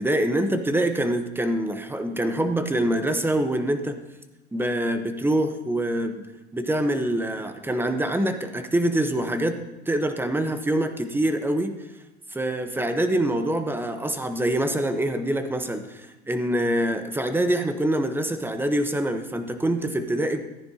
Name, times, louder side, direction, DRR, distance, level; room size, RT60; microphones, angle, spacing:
voice 1, 0.0-4.0 4.5-6.3 6.5-9.6 9.9-11.7 12.3-20.5, right 1 dB, 5° right, 8 dB, 0.8 m, -25 dB
14.0 x 9.9 x 2.8 m, 1.1 s
hypercardioid pair, 105°, 33 cm